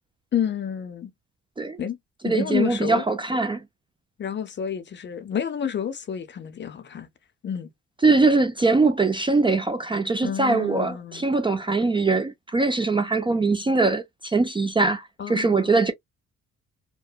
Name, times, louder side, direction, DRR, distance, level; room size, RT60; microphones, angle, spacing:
voice 1, 0.3-1.1 1.8-2.0 2.2-3.0 4.2-7.1 7.4-7.7 10.2-11.2 15.2-15.8, left 8 dB, 40° left, 0.5 m, -29 dB
voice 2, 2.2-3.6 8.0-15.9, right 3 dB, 15° right, 0.3 m, -22 dB
2.8 x 2.1 x 2.2 m
cardioid pair, 90°, 30 cm